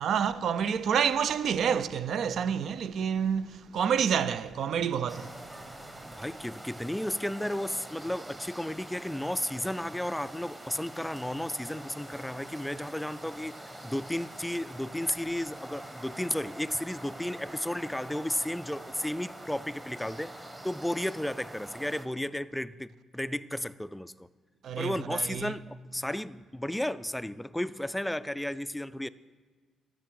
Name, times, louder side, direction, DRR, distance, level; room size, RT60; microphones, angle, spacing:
voice 1, 0.0-5.4 24.6-25.6, right 7 dB, 65° right, 0.5 m, -28 dB
sound 1, 5.1-22.1, right 1 dB, 15° right, 1.1 m, -45 dB
voice 2, 6.0-24.3 24.8-29.1, left 1 dB, 5° left, 0.3 m, -33 dB
12.5 x 7.1 x 5.9 m
cardioid pair, 90°, 0 cm